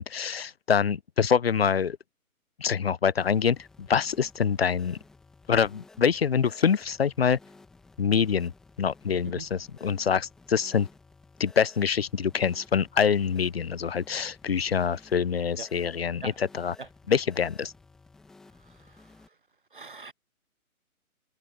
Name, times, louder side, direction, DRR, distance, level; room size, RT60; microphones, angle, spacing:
voice 1, 0.0-2.0 2.6-5.0 5.5-7.4 8.0-8.5 8.8-10.9 11.4-16.3 16.6-16.7 17.1-17.7, left 7 dB, 45° left, 0.5 m, -25 dB
sound 1, 3.2-19.3, left 3 dB, ahead, 0.9 m, -55 dB
voice 2, 18.6-19.4 19.7-20.1, right 4 dB, 35° right, 0.6 m, -43 dB
hypercardioid pair, 160°, 43 cm